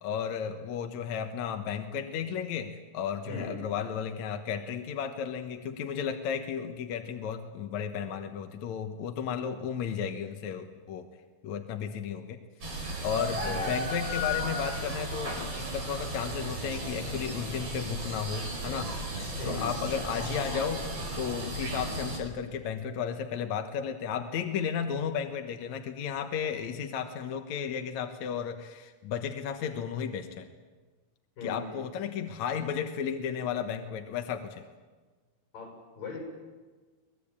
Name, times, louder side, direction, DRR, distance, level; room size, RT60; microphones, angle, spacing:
voice 1, 0.0-11.1 11.4-12.4 12.7-20.9 21.2-30.5 31.4-34.7, left 7 dB, 65° left, 5 dB, 2.4 m, -34 dB
voice 2, 3.2-3.6 13.3-13.8 19.4-19.7 31.4-31.9 35.5-36.2, left 3 dB, 80° left, 0 dB, 9.0 m, -39 dB
sound 1, 12.6-22.2, right 1 dB, 45° right, 6.6 m, -35 dB
24.0 x 20.0 x 8.8 m, 1.3 s
omnidirectional pair, 3.9 m